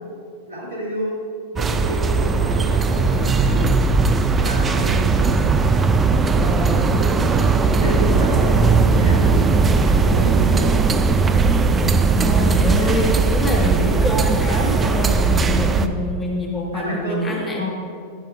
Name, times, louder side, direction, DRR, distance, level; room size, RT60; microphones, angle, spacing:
voice 1, 0.5-1.2 1.5-3.8 4.4-5.1 6.3-9.4 9.8-11.1 12.7-13.1 16.7-17.7, equal, 70° right, -3 dB, 2.2 m, -30 dB
sound 1, 1.6-15.9, right 4 dB, 20° right, 0.4 m, -18 dB
voice 2, 4.7-5.1 6.4-7.0 12.2-17.7, left 1 dB, 20° left, -1 dB, 1.2 m, -26 dB
11.5 x 9.1 x 2.2 m, 2.3 s
figure-of-eight pair, 90°, 0 cm